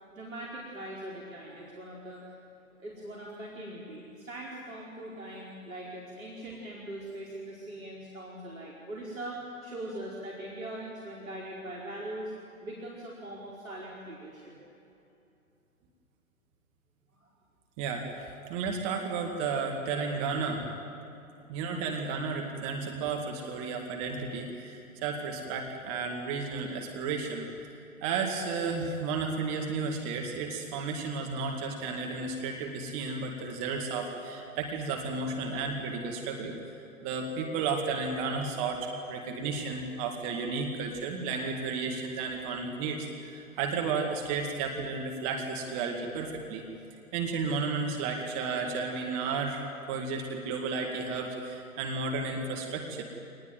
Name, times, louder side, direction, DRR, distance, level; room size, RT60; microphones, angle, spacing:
voice 1, 0.1-2.3 2.8-12.3 12.6-14.6 17.2-17.3, right 1 dB, 65° right, -4 dB, 4.6 m, -41 dB
voice 2, 17.8-18.1 18.5-20.7 21.5-27.7 28.0-36.6 37.0-46.6 47.1-49.6 49.9-53.0, right 4 dB, 25° right, 2 dB, 2.2 m, -33 dB
25.5 x 20.0 x 9.4 m, 2.8 s
figure-of-eight pair, 130°, 43 cm